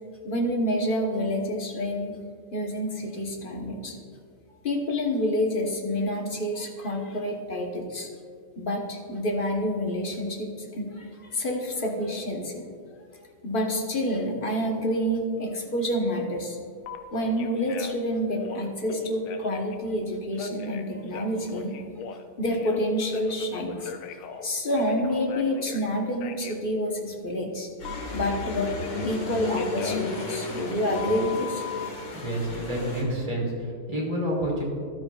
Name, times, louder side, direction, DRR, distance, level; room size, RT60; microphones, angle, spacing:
voice 1, 0.2-2.2 2.5-4.0 4.6-8.1 8.6-12.6 13.4-16.6 17.1-21.8 22.4-23.9 24.4-27.7 28.1-28.8 29.0-31.7, equal, 35° left, 0 dB, 0.9 m, -28 dB
Telephone, 16.8-17.0 17.4-18.0 18.4-19.8 20.3-22.8 23.1-25.8 26.2-26.6 27.9-29.2 29.6-31.9, left 7 dB, 85° left, 1.5 m, -39 dB
sound 1, 27.8-33.0, left 3 dB, 60° left, 2.5 m, -34 dB
voice 2, 32.1-34.6, equal, 15° right, -4 dB, 2.4 m, -29 dB
13.5 x 12.0 x 2.4 m, 2.1 s
omnidirectional pair, 2.3 m